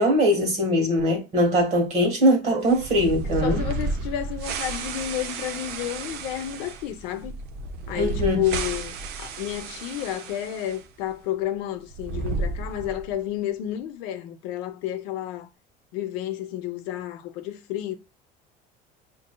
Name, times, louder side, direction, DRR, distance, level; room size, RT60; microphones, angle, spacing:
voice 1, 0.0-3.6 7.9-8.4, equal, 40° right, 1.4 m, -21 dB
sound 1, 2.6-10.8 11.1-11.2 11.8-13.2, right 3 dB, 70° right, 0.6 m, -32 dB
voice 2, 3.2-7.3 7.9-15.5 15.9-17.9, left 12 dB, 90° left, 0.6 m, -31 dB
6.0 x 2.7 x 2.2 m
cardioid pair, 155°, 17 cm